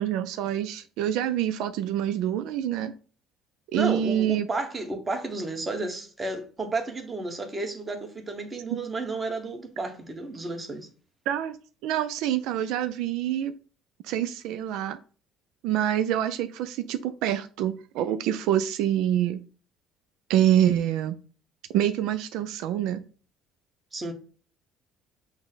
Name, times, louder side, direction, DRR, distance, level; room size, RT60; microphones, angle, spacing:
voice 1, 0.0-2.9 3.7-4.5 8.7-8.8 11.3-11.6 11.8-13.5 14.0-15.0 15.6-19.4 20.3-21.2 21.7-23.0, right 11 dB, 80° right, 0.3 m, -26 dB
voice 2, 3.7-10.9 23.9-24.1, right 2 dB, 20° right, 1.0 m, -32 dB
6.0 x 2.1 x 3.9 m
cardioid pair, 120°, 0 cm